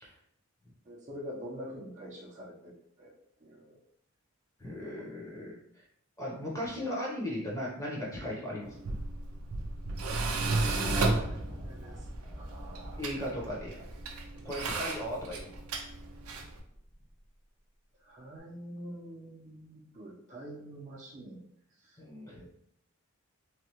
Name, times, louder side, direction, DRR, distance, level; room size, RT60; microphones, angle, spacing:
voice 1, 0.8-2.7 3.0-3.1 3.4-3.8 4.8-4.9 10.1-12.0 12.4-13.0 14.7-14.8 18.0-21.4 21.8-22.0 22.3-22.5, equal, 35° right, -4 dB, 0.6 m, -46 dB
voice 2, 4.6-5.5 6.2-8.7 13.0-13.8 14.4-15.5 22.0-22.4, left 1 dB, 15° left, -4 dB, 0.7 m, -37 dB
Tools, 8.6-16.6, right 3 dB, 85° right, 0.5 m, -34 dB
sound 1, 10.1-17.3 18.4-18.5, equal, 60° left, 1.2 m, -48 dB
3.2 x 2.3 x 3.0 m, 0.69 s
head